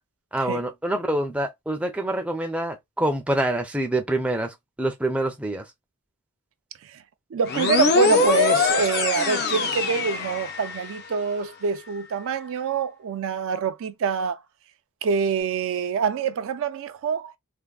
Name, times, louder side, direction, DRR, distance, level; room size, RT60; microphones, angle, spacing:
voice 1, 0.3-5.7, right 1 dB, 5° right, 0.5 m, -26 dB
voice 2, 7.3-14.4 15.0-17.3, right 6 dB, 65° right, 0.4 m, -25 dB
sound 1, 7.5-11.0, left 4 dB, 45° left, 0.6 m, -22 dB
3.4 x 2.1 x 2.3 m
head